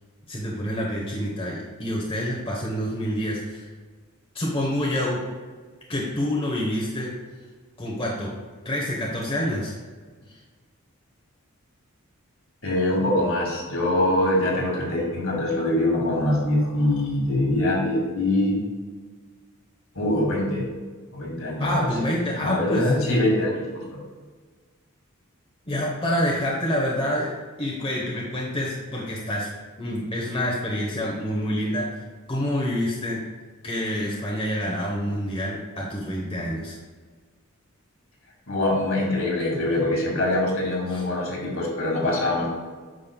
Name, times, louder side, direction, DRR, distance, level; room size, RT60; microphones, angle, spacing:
voice 1, 0.3-3.7 4.3-5.2 5.9-7.1 7.8-8.3 8.6-9.7 10.3-10.4 21.6-22.9 25.7-27.3 27.6-29.5 29.8-31.9 32.3-33.2 33.6-36.8 40.9-41.0, equal, 25° left, -4 dB, 0.9 m, -27 dB
voice 2, 12.6-18.6 19.9-20.7 21.1-22.1 22.4-23.6 23.9-24.0 38.5-42.5, left 1 dB, 65° left, -3 dB, 2.0 m, -23 dB
8.8 x 6.3 x 2.2 m, 1.5 s
head